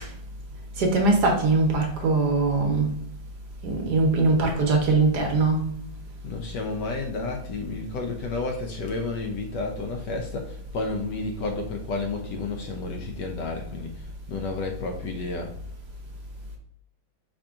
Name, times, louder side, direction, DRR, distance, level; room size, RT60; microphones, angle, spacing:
voice 1, 0.8-2.9 3.6-5.6, right 3 dB, 60° right, 2 dB, 1.2 m, -21 dB
voice 2, 6.2-13.9 14.3-15.5, left 3 dB, 70° left, 3 dB, 1.1 m, -31 dB
5.1 x 2.9 x 3.4 m, 0.68 s
omnidirectional pair, 2.2 m